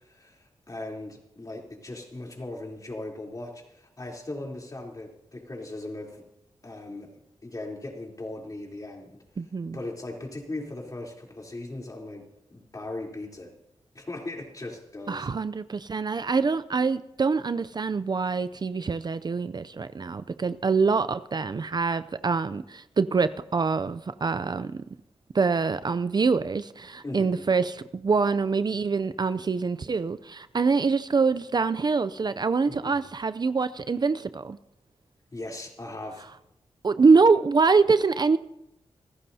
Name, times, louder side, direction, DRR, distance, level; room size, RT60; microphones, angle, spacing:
voice 1, 0.0-6.2 6.6-7.1 7.4-9.2 9.7-13.5 13.9-15.3 27.0-27.4 32.7-33.0 35.3-36.3, left 2 dB, 35° left, 0 dB, 3.5 m, -38 dB
voice 2, 9.4-9.8 15.1-24.8 25.3-34.6 36.8-38.4, right 4 dB, 40° right, 14 dB, 0.5 m, -25 dB
26.5 x 14.5 x 2.8 m, 0.88 s
cardioid pair, 70°, 10 cm